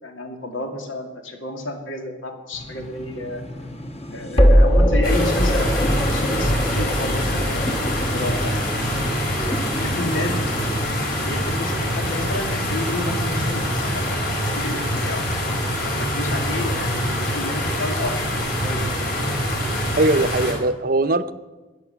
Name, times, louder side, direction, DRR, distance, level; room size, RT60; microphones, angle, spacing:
voice 1, 0.0-3.4 4.1-10.6 11.2-14.2 14.5-15.2 15.8-18.3 18.6-18.9, left 1 dB, 90° left, 4 dB, 2.5 m, -31 dB
sound 1, 2.5-13.6, equal, 30° left, 1.2 m, -23 dB
sound 2, 5.0-20.5, equal, 50° left, 4.9 m, -24 dB
voice 2, 19.9-21.3, right 2 dB, 45° right, 12 dB, 0.6 m, -20 dB
13.5 x 9.8 x 7.0 m, 1.2 s
head